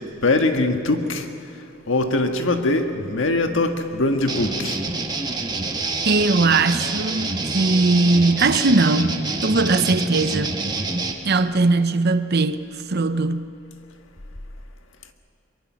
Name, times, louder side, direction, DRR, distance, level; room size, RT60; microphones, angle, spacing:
voice 1, 0.2-1.3 1.9-4.8, left 2 dB, 70° left, 1.7 m, -21 dB
sound 1, 4.3-11.1, right 3 dB, 20° right, 1.3 m, -27 dB
voice 2, 6.0-10.5 11.2-12.6 12.9-13.5, right 3 dB, 50° right, 0.8 m, -20 dB
23.0 x 22.0 x 6.3 m
head